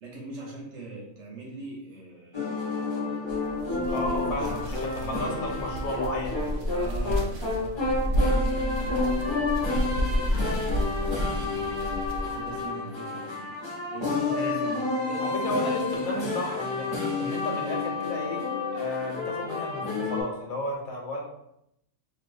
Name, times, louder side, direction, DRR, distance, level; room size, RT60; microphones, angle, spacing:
voice 1, 0.0-2.7 3.3-5.3 6.7-15.7, right 3 dB, 60° right, -4 dB, 1.2 m, -42 dB
sound 1, 2.3-20.2, left 3 dB, 25° left, 0.7 m, -30 dB
sound 2, 3.3-12.6, equal, 80° right, 0.4 m, -30 dB
voice 2, 3.9-6.7 14.3-14.6 15.2-18.5 18.7-21.2, left 1 dB, 80° left, 0 dB, 1.2 m, -33 dB
4.0 x 2.5 x 2.6 m, 0.79 s
omnidirectional pair, 1.4 m